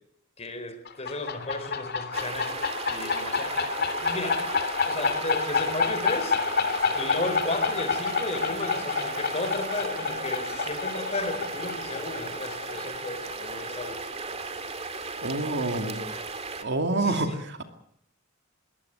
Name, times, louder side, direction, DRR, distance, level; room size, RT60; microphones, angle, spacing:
voice 1, 0.4-2.5 2.9-4.4 4.9-6.4 6.9-14.0 17.0-17.4, left 2 dB, 30° left, 8 dB, 4.4 m, -34 dB
sound 1, 0.9-14.2, left 5 dB, 50° left, 3.1 m, -29 dB
sound 2, 2.1-16.6, right 3 dB, 30° right, 2.2 m, -36 dB
voice 2, 15.2-16.1 16.6-17.6, right 2 dB, 60° right, 6 dB, 2.5 m, -27 dB
22.0 x 18.5 x 8.1 m, 0.70 s
head